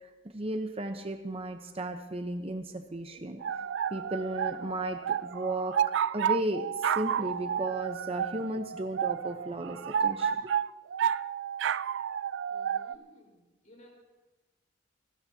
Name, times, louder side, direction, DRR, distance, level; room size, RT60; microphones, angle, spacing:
voice 1, 0.3-3.4 3.9-5.8 6.1-10.3, right 1 dB, 30° right, 6 dB, 0.8 m, -34 dB
sound 1, 3.4-12.9, right 8 dB, 80° right, 0.3 m, -31 dB
voice 2, 12.5-13.9, left 1 dB, 45° left, -1 dB, 4.4 m, -57 dB
27.5 x 13.5 x 2.8 m, 1.1 s
head